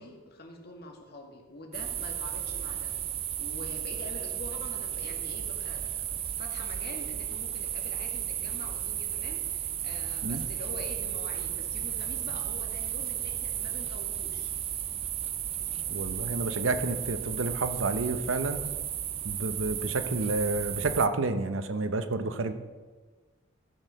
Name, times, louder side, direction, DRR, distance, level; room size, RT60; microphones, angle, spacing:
voice 1, 0.0-2.9 3.4-14.5, left 2 dB, 55° left, 2 dB, 2.0 m, -46 dB
sound 1, 1.7-21.1, right 10 dB, 30° right, 0.4 m, -34 dB
voice 2, 15.9-18.7 19.2-22.5, right 3 dB, 80° right, 10 dB, 0.8 m, -30 dB
14.5 x 6.6 x 6.4 m, 1.4 s
head